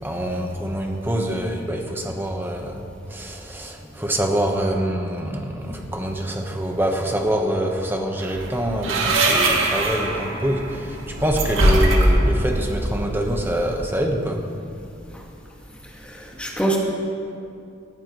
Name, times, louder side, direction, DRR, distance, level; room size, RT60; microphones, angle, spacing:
voice 1, 0.0-14.5, right 1 dB, 10° right, 2 dB, 1.1 m, -25 dB
sound 1, 8.2-13.9, right 1 dB, 85° right, 1.8 m, -22 dB
voice 2, 16.0-16.8, right 2 dB, 5° left, -3 dB, 1.8 m, -25 dB
19.0 x 15.0 x 3.1 m, 2.5 s
head